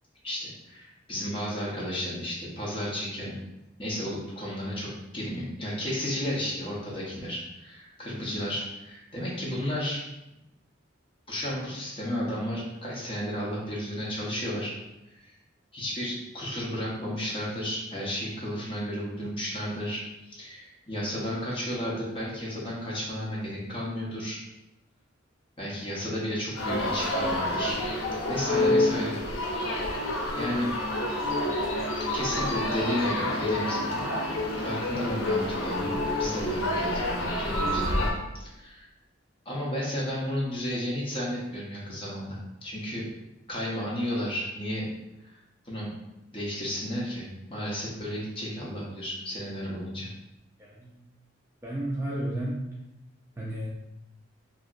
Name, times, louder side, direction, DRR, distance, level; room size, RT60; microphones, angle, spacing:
voice 1, 0.2-3.4 3.8-10.0 11.3-14.7 15.1-15.3 15.7-24.4 25.6-27.8 28.3-29.2 29.6-30.0 30.3-30.7 32.1-34.0 34.6-38.1 38.4-38.9 39.5-43.0 43.5-44.9 45.2-45.4 45.6-45.9 46.3-50.1, equal, 25° left, -5 dB, 0.8 m, -33 dB
sound 1, 26.6-38.1, left 1 dB, 90° left, 0.6 m, -28 dB
voice 2, 50.6-50.9 51.6-52.6 53.4-53.7, right 1 dB, 15° right, -5 dB, 0.3 m, -32 dB
2.8 x 2.8 x 2.4 m, 0.93 s
head